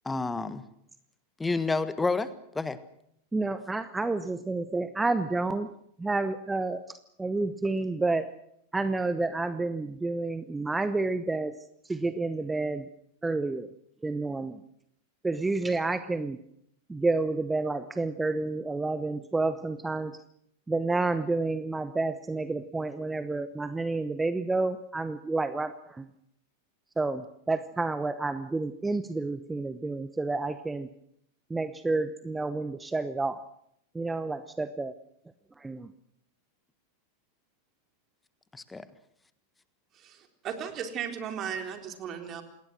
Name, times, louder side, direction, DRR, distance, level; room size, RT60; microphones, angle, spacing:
voice 1, 0.0-0.6 1.4-2.8 38.5-38.9, left 3 dB, 10° left, 14 dB, 1.5 m, -29 dB
voice 2, 3.3-5.7 6.0-8.3 8.7-11.5 11.8-12.9 13.2-13.7 14.0-14.6 15.2-16.4 16.9-20.2 20.7-26.1 27.0-30.9 31.5-33.4 33.9-34.9 35.6-35.9, right 3 dB, 10° right, 13 dB, 1.0 m, -30 dB
voice 3, 39.9-42.4, right 8 dB, 30° right, 5 dB, 3.9 m, -36 dB
27.5 x 20.5 x 6.3 m, 0.73 s
figure-of-eight pair, 90°, 0 cm